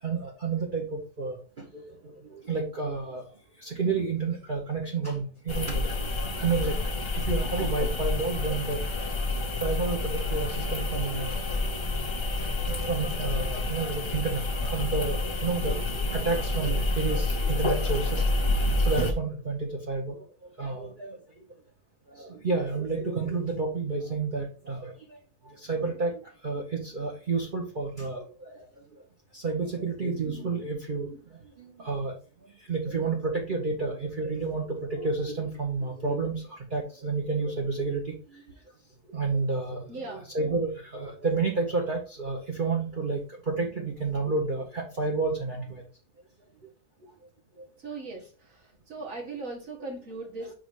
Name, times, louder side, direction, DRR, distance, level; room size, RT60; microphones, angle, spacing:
voice 1, 0.0-3.2 3.6-6.0 6.3-6.8 7.1-9.0 9.6-11.5 11.9-12.0 12.6-18.3 18.8-20.2 20.4-21.2 22.1-25.2 25.4-28.6 29.3-32.2 32.7-38.4 39.1-45.8 47.6-47.7, right 4 dB, 35° right, -1 dB, 1.1 m, -30 dB
sound 1, 5.5-19.1, left 2 dB, 25° left, 0.6 m, -28 dB
voice 2, 39.9-40.2 47.8-48.6 48.9-50.5, right 3 dB, 55° right, -1 dB, 2.3 m, -38 dB
5.4 x 4.3 x 4.7 m, 0.37 s
omnidirectional pair, 1.6 m